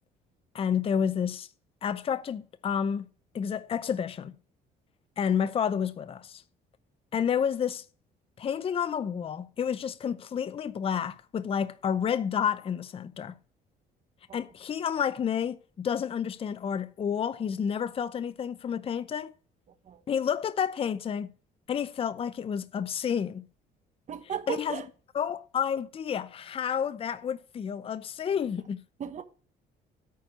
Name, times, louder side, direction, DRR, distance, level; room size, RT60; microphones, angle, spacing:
voice 1, 0.5-1.5 1.8-3.0 3.3-4.3 5.2-6.4 7.1-7.8 8.4-13.3 14.3-19.3 20.1-21.3 21.7-23.5 24.5-24.8 25.1-28.8, left 8 dB, 35° left, 0.6 m, -30 dB
voice 2, 24.1-24.9 29.0-29.2, right 8 dB, 45° right, 1.3 m, -35 dB
9.2 x 4.5 x 7.6 m
cardioid pair, 110°, 17 cm